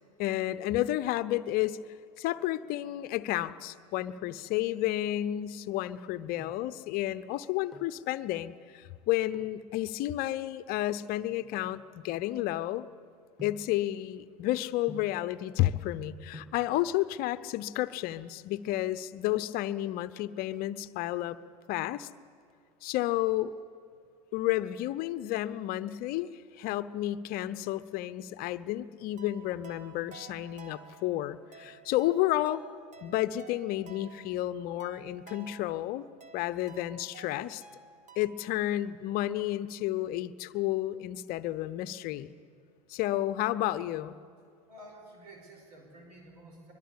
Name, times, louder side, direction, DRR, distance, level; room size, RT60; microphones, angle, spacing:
voice 1, 0.2-1.8 2.2-12.9 13.4-21.4 21.7-22.1 22.8-23.5 24.3-26.3 26.6-32.6 33.0-36.0 36.3-37.6 38.2-42.3 42.9-44.2, left 14 dB, 45° left, 14 dB, 0.8 m, -31 dB
sound 1, 6.4-6.8 7.5-8.0 9.3-9.7 10.4-12.8 13.4-13.8 14.9-15.3 16.0-16.1 16.3-16.7 17.8-18.3 18.6-18.7 19.0-19.1 19.5-19.9 20.2-21.2 21.7-22.1 22.4-23.6 23.9-24.0, left 2 dB, ahead, 2.1 m, -52 dB
sound 2, 29.2-38.6, right 6 dB, 35° right, 2.0 m, -53 dB
voice 2, 44.7-46.7, right 1 dB, 75° right, 2 dB, 5.0 m, -51 dB
22.5 x 22.5 x 8.5 m, 2.3 s
figure-of-eight pair, 80°, 21 cm